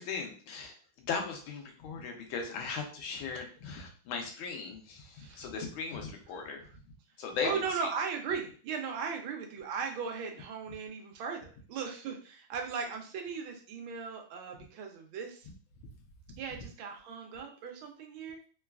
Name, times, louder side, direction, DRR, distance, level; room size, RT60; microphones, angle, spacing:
voice 1, 0.0-6.6 7.2-7.9 15.5-15.6 16.5-16.6, left 5 dB, 90° left, 3 dB, 1.5 m, -38 dB
voice 2, 7.4-15.5 16.4-18.5, right 6 dB, 90° right, 3 dB, 1.5 m, -37 dB
3.9 x 2.3 x 2.2 m, 0.41 s
omnidirectional pair, 2.2 m